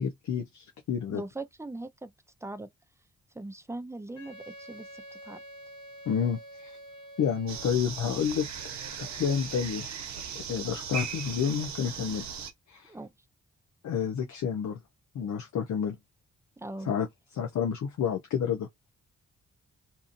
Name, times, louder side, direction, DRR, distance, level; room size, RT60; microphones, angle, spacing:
voice 1, 0.0-1.2 6.1-6.8 7.2-8.5 9.0-9.9 10.5-12.3 12.7-12.9 13.8-14.8 15.1-16.0 16.9-17.1 17.3-18.7, left 7 dB, 70° left, 0.7 m, -29 dB
voice 2, 1.1-2.1 2.4-2.7 3.3-5.4 12.9-13.1 16.6-16.9, right 2 dB, 10° right, 0.6 m, -40 dB
Wind instrument woodwind instrument, 4.1-7.9, right 1 dB, 90° left, 1.2 m, -47 dB
sound 1, 7.5-12.5, right 7 dB, 70° right, 0.8 m, -38 dB
2.8 x 2.5 x 2.5 m
supercardioid pair, 50°, 29 cm